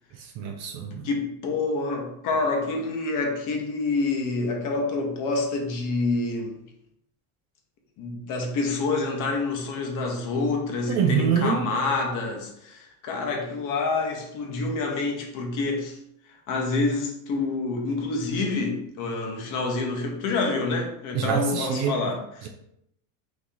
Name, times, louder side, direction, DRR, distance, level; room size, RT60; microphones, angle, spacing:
voice 1, 0.2-1.1 10.9-11.6 21.1-22.0 22.4-22.5, right 6 dB, 40° right, 3 dB, 0.4 m, -25 dB
voice 2, 1.0-6.6 8.0-16.0 16.5-22.5, left 3 dB, 45° left, 1 dB, 1.0 m, -27 dB
3.0 x 2.7 x 3.7 m, 0.78 s
supercardioid pair, 125°, 44 cm